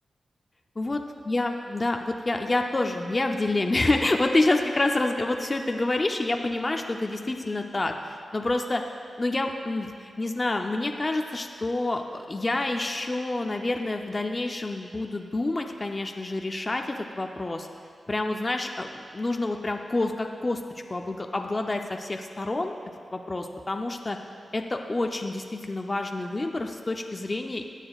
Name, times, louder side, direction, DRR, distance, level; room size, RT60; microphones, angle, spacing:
voice 1, 1.3-8.8 9.2-17.7 18.1-20.6 20.9-22.7 23.1-24.2 24.5-27.7, left 2 dB, 30° left, 3 dB, 0.5 m, -28 dB
16.0 x 9.8 x 2.4 m, 2.3 s
wide cardioid pair, 100°, 0 cm